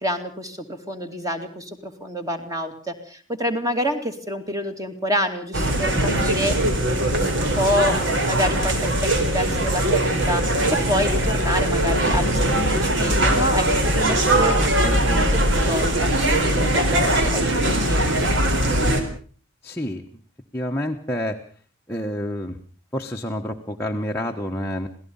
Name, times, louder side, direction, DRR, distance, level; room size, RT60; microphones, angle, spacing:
voice 1, 0.0-6.6 7.0-8.0 8.3-10.4 10.9-13.7 14.0-14.5 14.8-18.3, equal, 15° right, 6 dB, 2.5 m, -28 dB
sound 1, 5.5-19.0, right 1 dB, 55° right, 4.1 m, -21 dB
voice 2, 19.6-20.0 20.5-21.4 21.9-22.6 22.9-24.9, equal, 10° left, 0 dB, 1.3 m, -28 dB
27.0 x 18.0 x 5.5 m, 0.43 s
head